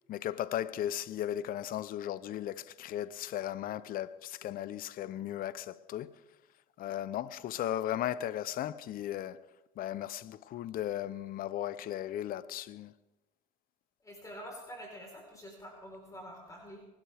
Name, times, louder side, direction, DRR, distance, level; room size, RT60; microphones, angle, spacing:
voice 1, 0.1-6.1 6.8-9.4 9.8-12.9, left 12 dB, 50° left, 0.7 m, -36 dB
voice 2, 14.0-16.9, equal, 15° left, 4.2 m, -47 dB
24.5 x 12.0 x 3.5 m
supercardioid pair, 90°, 19 cm